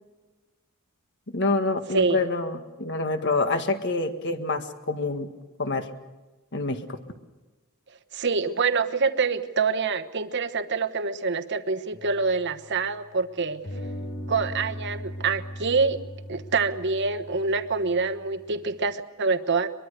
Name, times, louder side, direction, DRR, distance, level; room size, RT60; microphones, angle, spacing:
voice 1, 1.3-5.3 5.6-5.9 6.5-7.0, left 3 dB, 50° left, 7 dB, 1.7 m, -27 dB
voice 2, 8.1-13.6 14.3-16.0 16.3-19.7, right 4 dB, 50° right, 9 dB, 1.1 m, -26 dB
sound 1, 11.9-13.1 13.6-18.8, equal, 75° left, 4.1 m, -39 dB
23.0 x 23.0 x 6.8 m, 1.2 s
head